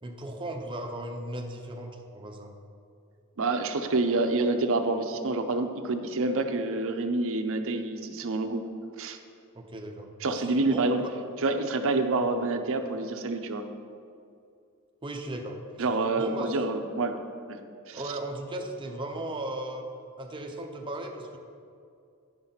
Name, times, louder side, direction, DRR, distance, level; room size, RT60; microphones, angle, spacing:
voice 1, 0.0-2.5 9.5-11.1 15.0-15.9 16.2-16.7 17.9-19.9 20.2-21.4, right 1 dB, 20° right, 2 dB, 0.7 m, -37 dB
voice 2, 3.4-8.6 9.0-9.2 10.2-11.0 11.4-13.6 15.8-17.1 17.9-18.0, right 3 dB, 65° right, 6 dB, 0.6 m, -27 dB
10.0 x 5.9 x 4.0 m, 2.4 s
head